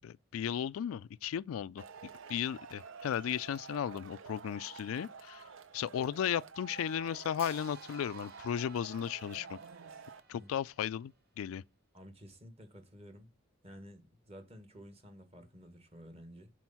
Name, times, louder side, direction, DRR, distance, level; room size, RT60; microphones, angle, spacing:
voice 1, 0.0-1.8 2.3-5.4 5.7-9.6 10.3-11.6, left 9 dB, 85° left, 0.3 m, -35 dB
Male speech man speaking / Shout / Clapping, 1.8-10.2, right 5 dB, 70° right, 0.6 m, -49 dB
Hi-hat, 7.4-11.4, right 5 dB, 45° right, 1.7 m, -57 dB
voice 2, 11.9-13.3 13.6-16.5, equal, 30° right, 1.3 m, -52 dB
6.1 x 4.3 x 5.5 m
head